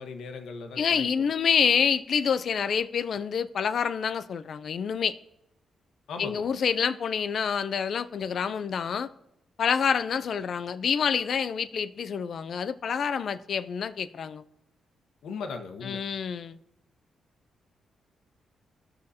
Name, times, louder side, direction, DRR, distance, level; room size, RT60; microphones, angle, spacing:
voice 1, 0.0-1.2 6.1-6.5 15.2-16.0, left 4 dB, 80° left, 1.1 m, -38 dB
voice 2, 0.8-5.1 6.2-9.1 9.6-14.4 15.8-16.6, left 7 dB, 50° left, 0.4 m, -27 dB
19.0 x 6.4 x 2.8 m
wide cardioid pair, 165°, 0 cm